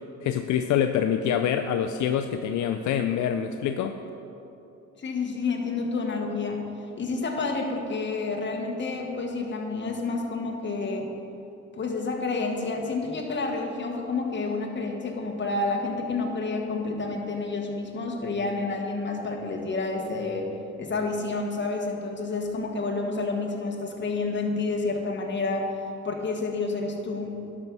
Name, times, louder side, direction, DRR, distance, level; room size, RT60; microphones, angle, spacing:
voice 1, 0.2-4.0, left 9 dB, 75° left, 7 dB, 0.5 m, -25 dB
voice 2, 5.0-6.6 7.0-11.1 11.7-20.5 20.8-27.4, left 3 dB, 40° left, 1 dB, 1.6 m, -29 dB
11.0 x 6.1 x 5.4 m, 2.9 s
cardioid pair, 90°, 30 cm